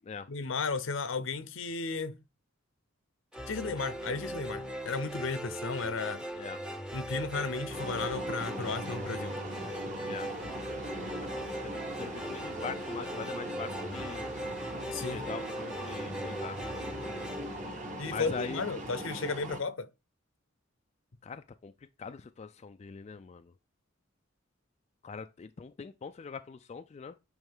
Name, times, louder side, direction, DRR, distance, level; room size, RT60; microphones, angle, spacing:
voice 1, 0.3-2.2 3.5-6.2 6.9-9.3 14.9-15.2 18.0-19.9, left 4 dB, 70° left, 0.7 m, -34 dB
sound 1, 3.3-18.6, right 1 dB, 5° right, 0.7 m, -39 dB
sound 2, 7.7-19.6, right 1 dB, 40° right, 1.2 m, -40 dB
voice 2, 11.6-14.3 15.1-16.6 18.1-18.6 21.2-21.7 22.0-23.5 25.0-27.2, left 5 dB, 35° left, 0.3 m, -42 dB
8.9 x 3.1 x 3.6 m
head